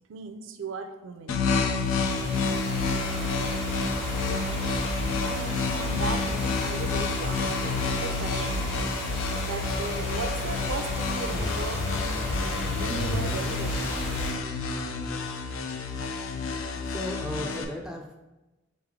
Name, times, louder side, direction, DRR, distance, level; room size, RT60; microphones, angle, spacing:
voice 1, 0.1-1.4 5.2-8.8 9.4-13.9, right 4 dB, 75° right, 8 dB, 0.4 m, -37 dB
sound 1, 1.3-17.6, left 4 dB, 85° left, 0.5 m, -30 dB
sound 2, 1.6-14.3, equal, 65° left, 1.2 m, -33 dB
voice 2, 16.8-18.2, equal, 5° right, 2 dB, 0.3 m, -35 dB
3.9 x 3.3 x 3.6 m, 1.0 s
head